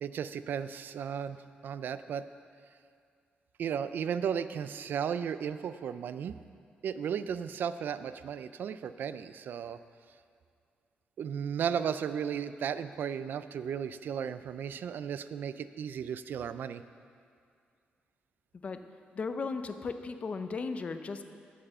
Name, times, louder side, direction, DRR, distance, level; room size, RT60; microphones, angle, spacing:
voice 1, 0.0-1.4 1.6-2.2 3.6-6.4 6.8-9.8 11.2-16.8, right 8 dB, 65° right, 13 dB, 0.3 m, -35 dB
voice 2, 19.2-21.3, left 4 dB, 35° left, 9 dB, 0.6 m, -36 dB
8.3 x 7.8 x 6.7 m, 2.2 s
cardioid pair, 125°, 4 cm